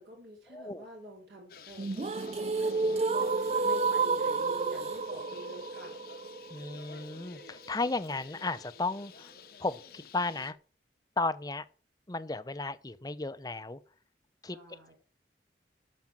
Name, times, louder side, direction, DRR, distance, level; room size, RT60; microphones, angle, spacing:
voice 1, 0.0-6.0 14.5-14.9, right 1 dB, 70° right, 3.5 m, -47 dB
voice 2, 0.5-0.8 6.5-9.3 9.6-10.6 11.2-11.6 12.1-13.8 14.4-14.6, left 3 dB, 20° left, 0.7 m, -34 dB
Bird, 1.5-10.5, left 7 dB, 60° left, 0.9 m, -52 dB
sound 1, 1.8-7.8, right 4 dB, 35° right, 0.4 m, -31 dB
13.0 x 5.2 x 7.6 m
head